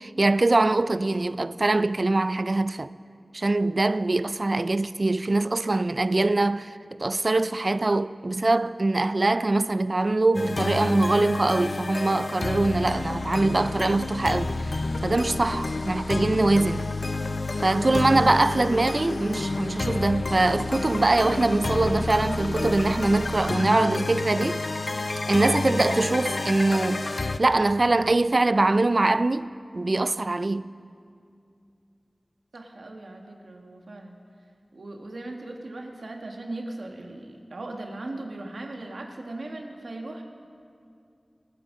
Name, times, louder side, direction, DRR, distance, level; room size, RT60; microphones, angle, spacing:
voice 1, 0.0-2.9 3.3-16.9 17.6-24.6 24.9-27.1 27.4-30.7, right 2 dB, 50° right, 0.3 m, -23 dB
sound 1, 10.3-27.4, left 2 dB, 65° left, 0.4 m, -29 dB
voice 2, 32.5-34.2 34.7-40.2, right 2 dB, 85° right, 1.4 m, -38 dB
26.5 x 9.0 x 3.8 m
wide cardioid pair, 60°, 0 cm